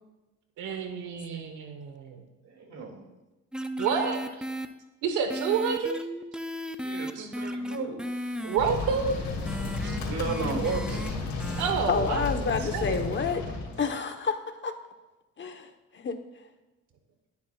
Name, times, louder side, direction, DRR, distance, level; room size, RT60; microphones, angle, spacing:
voice 1, 0.6-2.2 3.8-4.4 5.0-6.0 7.1-7.3 8.4-9.2 9.8-10.0 11.6-13.0, right 6 dB, 90° right, 5 dB, 1.1 m, -29 dB
voice 2, 2.4-3.0 6.8-8.0 10.1-11.1, right 4 dB, 60° right, 2 dB, 2.3 m, -33 dB
sound 1, 3.5-4.7 5.3-11.1 11.4-11.7, equal, 5° right, 0.5 m, -35 dB
sound 2, 8.6-13.8, left 3 dB, 90° left, 3.4 m, -33 dB
voice 3, 11.9-13.4 13.8-14.7 15.4-16.2, left 5 dB, 40° left, 7 dB, 1.0 m, -29 dB
19.5 x 7.1 x 2.3 m, 1.1 s
cardioid pair, 90°, 30 cm